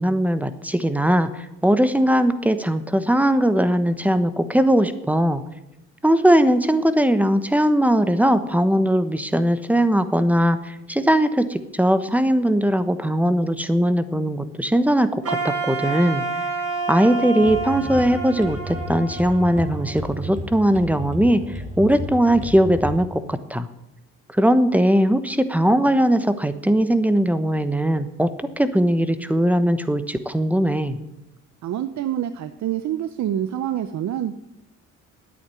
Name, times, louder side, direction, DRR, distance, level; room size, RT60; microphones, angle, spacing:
voice 1, 0.0-5.4 6.0-16.2 16.9-23.7 24.3-28.3 28.6-31.0, equal, 5° right, 11 dB, 1.1 m, -20 dB
Wind instrument woodwind instrument, 15.2-20.3, right 4 dB, 50° right, 3.5 m, -29 dB
sound 1, 17.4-23.0, right 1 dB, 25° right, 2.7 m, -33 dB
voice 2, 31.6-34.4, right 11 dB, 65° right, 11 dB, 0.8 m, -26 dB
10.5 x 8.9 x 9.8 m, 0.92 s
cardioid pair, 90°, 30 cm